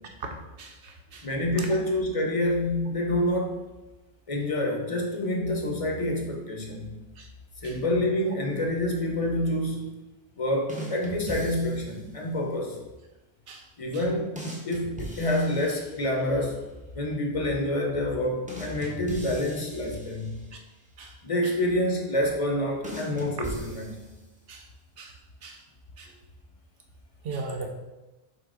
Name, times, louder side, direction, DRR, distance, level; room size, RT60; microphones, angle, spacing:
voice 1, 0.6-1.3 7.2-7.3 7.6-7.7 13.5-13.6 13.9-14.0 20.5-20.6 21.0-21.1 24.5-24.7 25.0-25.1 25.4-25.6 26.0-26.1 27.2-27.7, right 3 dB, 65° right, 3 dB, 0.8 m, -38 dB
voice 2, 1.2-3.6 4.3-6.9 7.6-10.0 10.4-12.8 13.8-16.6 16.9-20.4 21.2-24.0, left 1 dB, 35° left, 1 dB, 0.7 m, -27 dB
sound 1, 10.7-12.1 14.4-16.3 18.5-20.6 22.8-24.5, right 1 dB, 10° right, 0.6 m, -40 dB
3.7 x 2.8 x 4.8 m, 1.1 s
omnidirectional pair, 1.1 m